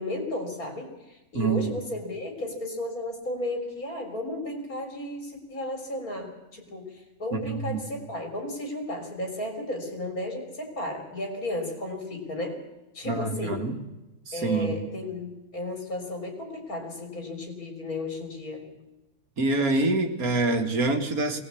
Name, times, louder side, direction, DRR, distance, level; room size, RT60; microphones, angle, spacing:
voice 1, 0.0-12.6 12.9-13.6 14.3-18.7, left 1 dB, 80° left, 5 dB, 4.3 m, -34 dB
voice 2, 1.3-1.8 7.3-7.8 13.1-13.7 14.3-14.8 19.4-21.4, right 3 dB, 80° right, 5 dB, 2.5 m, -26 dB
22.0 x 18.5 x 8.5 m, 1.0 s
omnidirectional pair, 1.5 m